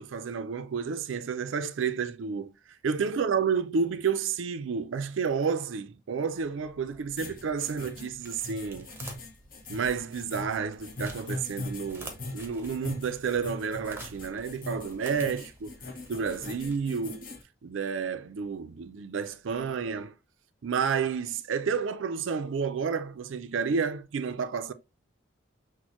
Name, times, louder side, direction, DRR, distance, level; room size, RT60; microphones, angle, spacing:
voice 1, 0.0-2.5 2.8-8.9 9.7-15.7 16.1-17.3 17.6-20.1 20.6-24.7, right 6 dB, 80° right, 0.4 m, -30 dB
sound 1, 6.2-17.2, right 2 dB, 10° right, 0.8 m, -50 dB
sound 2, 7.2-17.4, left 2 dB, 45° left, 0.8 m, -40 dB
6.1 x 2.1 x 2.9 m
head